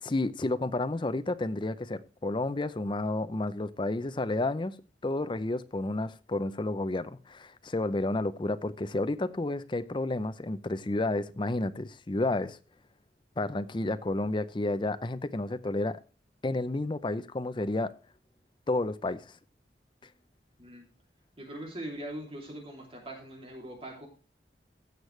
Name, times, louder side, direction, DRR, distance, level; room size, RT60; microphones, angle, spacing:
voice 1, 0.0-4.8 5.0-12.6 13.4-16.0 16.4-17.9 18.7-19.3, left 2 dB, 30° left, 0.5 m, -31 dB
voice 2, 21.4-24.1, right 1 dB, 35° right, 2.9 m, -41 dB
16.0 x 6.6 x 3.2 m
head